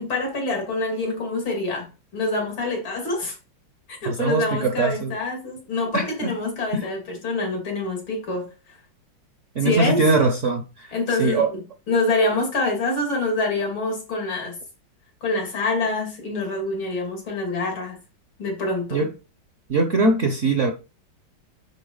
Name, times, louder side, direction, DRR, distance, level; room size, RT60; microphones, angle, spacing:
voice 1, 0.0-3.4 3.9-8.5 9.6-10.0 10.9-11.6 11.9-14.6 15.2-18.0 18.4-19.1, left 2 dB, 80° left, 3.5 m, -26 dB
voice 2, 4.1-5.1 5.9-6.3 6.7-6.9 9.5-11.5 18.9-19.1 19.7-20.7, right 3 dB, 50° right, 0.9 m, -22 dB
10.0 x 4.0 x 4.0 m
omnidirectional pair, 2.2 m